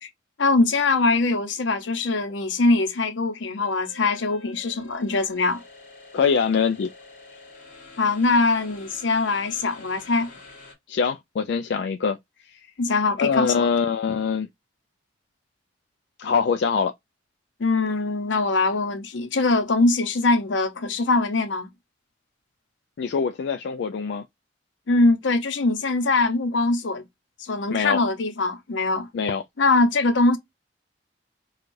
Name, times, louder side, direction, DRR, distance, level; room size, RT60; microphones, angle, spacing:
voice 1, 0.4-5.6 8.0-10.3 12.8-13.7 17.6-21.7 24.9-27.0 27.4-29.1 29.6-30.4, left 3 dB, 85° left, 0.8 m, -22 dB
sound 1, 3.6-10.7, left 3 dB, 45° left, 1.4 m, -47 dB
voice 2, 6.1-6.9 10.9-12.2 12.5-12.7 13.2-14.5 16.2-16.9 23.0-24.2 27.7-28.0 29.1-29.4, left 6 dB, 65° left, 0.3 m, -23 dB
4.6 x 2.3 x 2.5 m
head